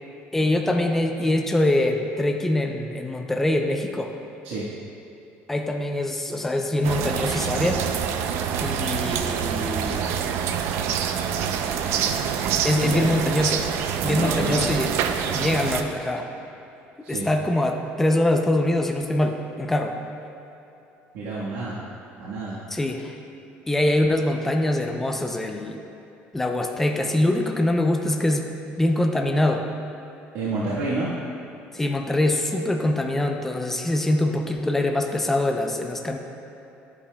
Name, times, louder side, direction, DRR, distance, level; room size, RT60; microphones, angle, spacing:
voice 1, 0.3-4.1 5.5-7.8 8.6-10.1 12.6-13.7 14.0-14.9 15.3-16.3 17.1-20.0 22.7-23.1 23.7-25.8 26.3-28.5 28.8-29.7 31.7-36.2, left 1 dB, 5° left, 3 dB, 0.5 m, -23 dB
sound 1, 6.8-15.8, right 8 dB, 65° right, 0.5 m, -26 dB
voice 2, 12.6-13.1 14.0-14.8 17.0-17.3 21.1-21.8 22.2-22.6 30.3-31.1, right 2 dB, 90° right, -9 dB, 1.4 m, -29 dB
12.0 x 8.4 x 2.3 m, 3.0 s
cardioid pair, 150°, 5 cm